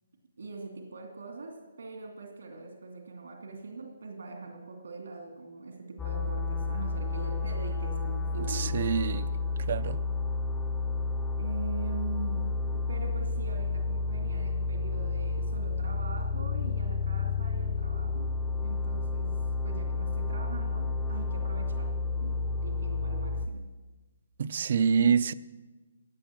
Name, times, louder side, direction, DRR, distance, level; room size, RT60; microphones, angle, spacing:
voice 1, 0.4-9.1 11.4-18.3 18.6-19.4 19.6-23.7, right 3 dB, 85° right, 2.5 m, -42 dB
sound 1, 6.0-23.5, left 3 dB, 5° left, 0.6 m, -31 dB
voice 2, 8.5-9.3 9.7-10.0 24.4-25.3, right 6 dB, 40° right, 0.4 m, -26 dB
16.0 x 9.5 x 7.5 m
hypercardioid pair, 175°, 0 cm